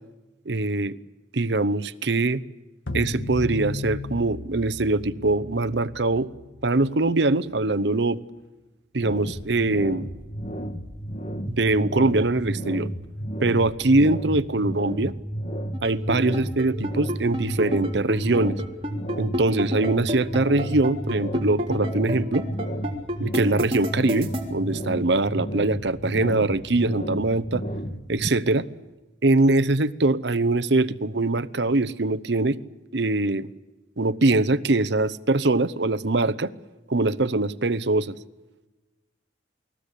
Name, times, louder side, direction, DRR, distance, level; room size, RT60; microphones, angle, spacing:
voice 1, 0.5-1.0 1.3-2.4 2.9-6.3 6.6-8.2 8.9-10.1 11.5-12.9 13.4-15.1 15.8-18.6 19.2-22.5 23.2-27.6 28.1-28.7 29.2-32.6 32.9-33.5 34.0-36.5 36.9-38.1, right 2 dB, 65° right, 17 dB, 0.9 m, -23 dB
sound 1, 2.9-7.3, left 2 dB, 85° left, 2.2 m, -35 dB
sound 2, 9.0-28.3, equal, 40° left, 1.5 m, -32 dB
sound 3, 15.7-24.4, equal, 30° right, 3.6 m, -28 dB
28.5 x 20.0 x 8.4 m, 1.1 s
head